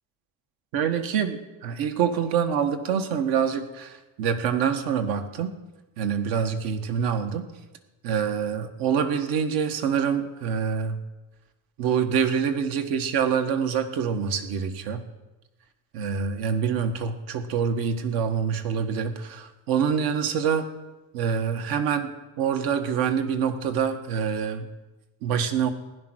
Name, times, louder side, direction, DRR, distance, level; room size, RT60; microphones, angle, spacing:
voice 1, 0.7-5.6 6.0-7.4 8.0-11.0 11.8-15.0 15.9-20.6 21.1-22.1 22.4-24.7 25.2-25.7, right 7 dB, 80° right, 7 dB, 1.5 m, -26 dB
16.0 x 10.0 x 6.3 m, 1.1 s
cardioid pair, 170°, 36 cm